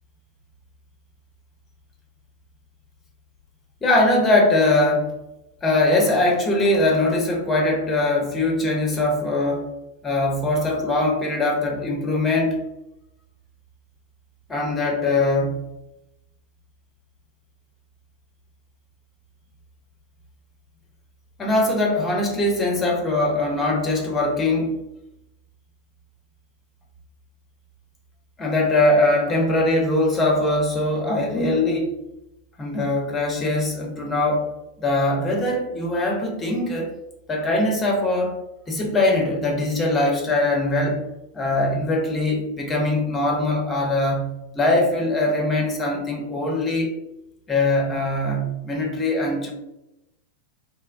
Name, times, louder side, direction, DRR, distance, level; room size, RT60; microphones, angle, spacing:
voice 1, 3.8-5.1 5.6-9.7 10.0-12.6 14.5-15.7 21.4-24.8 28.4-31.9 32.6-34.5 34.8-36.9 37.3-38.4 38.7-41.1 41.3-46.9 47.5-49.5, left 2 dB, 20° left, 0 dB, 0.7 m, -21 dB
2.9 x 2.1 x 2.4 m, 0.90 s
figure-of-eight pair, 90°, 0 cm